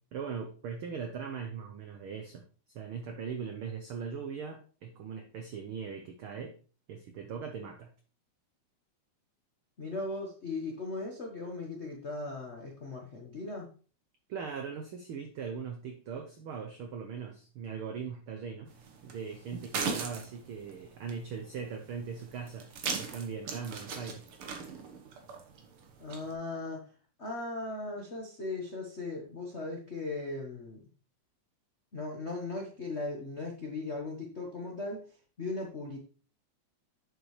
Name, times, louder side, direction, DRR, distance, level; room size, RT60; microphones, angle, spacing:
voice 1, 0.1-2.5 2.7-6.6 6.9-7.9 14.3-18.7 19.0-24.2, right 6 dB, 80° right, 5 dB, 1.1 m, -40 dB
voice 2, 9.8-13.7 26.0-26.8 27.2-30.8 31.9-36.0, left 3 dB, 75° left, -1 dB, 0.6 m, -38 dB
sound 1, 18.7-26.3, right 5 dB, 55° right, 1.7 m, -40 dB
8.7 x 6.9 x 3.2 m, 0.39 s
omnidirectional pair, 3.5 m